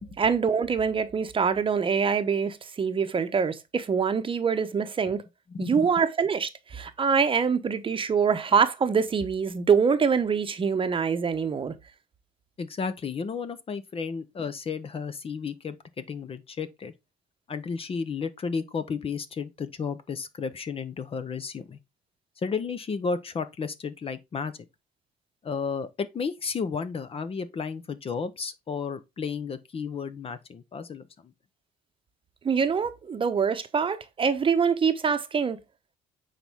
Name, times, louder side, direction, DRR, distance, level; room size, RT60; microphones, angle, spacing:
voice 1, 0.2-5.2 5.6-11.7 32.4-35.6, right 6 dB, 30° right, 0.9 m, -24 dB
voice 2, 5.5-5.9 12.6-16.9 17.5-21.8 22.4-24.5 25.4-31.3, left 5 dB, 35° left, 0.8 m, -33 dB
8.9 x 4.3 x 3.6 m
cardioid pair, 110°, 17 cm